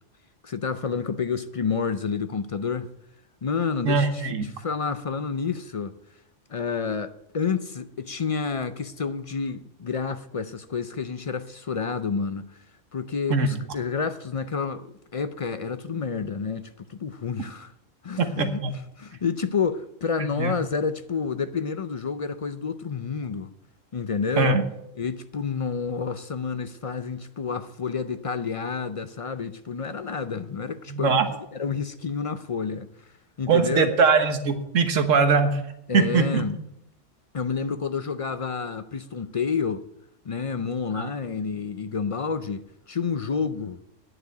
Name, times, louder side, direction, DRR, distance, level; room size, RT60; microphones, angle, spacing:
voice 1, 0.4-2.9 3.4-6.0 6.5-12.6 12.9-17.7 18.0-23.5 23.9-24.6 25.0-31.2 31.5-32.9 33.4-33.9 35.9-36.6 37.3-39.8 40.2-43.8, left 5 dB, 55° left, 0.3 m, -29 dB
voice 2, 3.8-4.5 13.3-13.5 18.2-18.7 20.2-20.5 24.4-24.6 30.9-31.3 33.5-35.6 35.9-36.4 40.9-41.1, right 4 dB, 75° right, 1.6 m, -21 dB
10.0 x 7.0 x 9.0 m
omnidirectional pair, 1.3 m